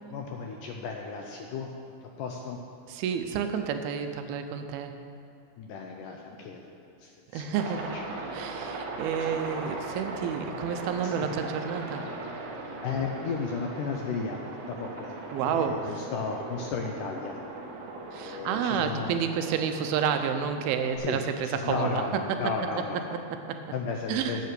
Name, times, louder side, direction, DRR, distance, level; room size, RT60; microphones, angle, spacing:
voice 1, 0.1-1.7 2.0-2.6 5.6-7.6 11.0-11.1 12.8-15.1 15.5-17.4 18.2-19.2 21.0-21.2 21.5-23.2 23.7-24.5, left 5 dB, 85° left, 1 dB, 1.9 m, -34 dB
voice 2, 2.9-5.0 7.3-8.0 8.3-12.1 15.3-16.0 18.1-22.5 23.1-23.7 24.1-24.4, right 7 dB, 85° right, 7 dB, 2.5 m, -30 dB
Aircraft, 7.5-21.0, right 3 dB, 65° right, 2.3 m, -39 dB
9.4 x 7.6 x 6.7 m, 2.4 s
omnidirectional pair, 4.5 m